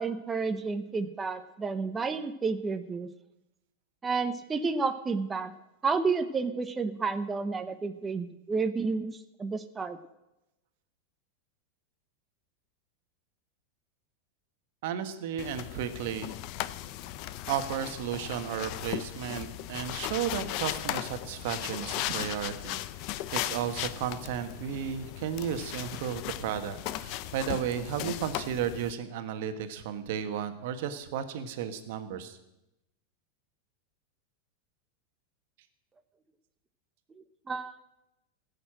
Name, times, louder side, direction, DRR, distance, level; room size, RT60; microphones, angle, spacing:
voice 1, 0.0-3.1 4.0-5.5 5.8-10.0 37.5-37.8, right 4 dB, 15° right, 9 dB, 0.8 m, -31 dB
voice 2, 14.8-16.3 17.5-22.8 23.3-32.4, right 9 dB, 65° right, 9 dB, 1.4 m, -34 dB
sound 1, 15.4-28.9, left 14 dB, 50° left, 0.6 m, -37 dB
15.5 x 6.7 x 7.6 m, 0.93 s
supercardioid pair, 140°, 0 cm